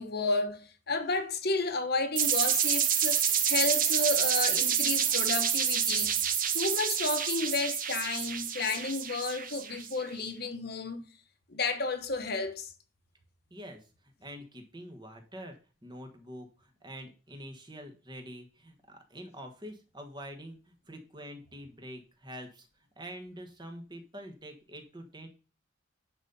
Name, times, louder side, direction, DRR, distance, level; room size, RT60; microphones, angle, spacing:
voice 1, 0.0-6.1 6.5-11.0 11.5-12.7, left 3 dB, 50° left, 1.2 m, -32 dB
sound 1, 2.2-9.9, right 8 dB, 45° right, 1.1 m, -28 dB
voice 2, 13.5-13.9 14.2-15.5 15.8-22.7 23.0-25.3, equal, 20° right, 1.4 m, -45 dB
10.5 x 4.2 x 5.4 m
head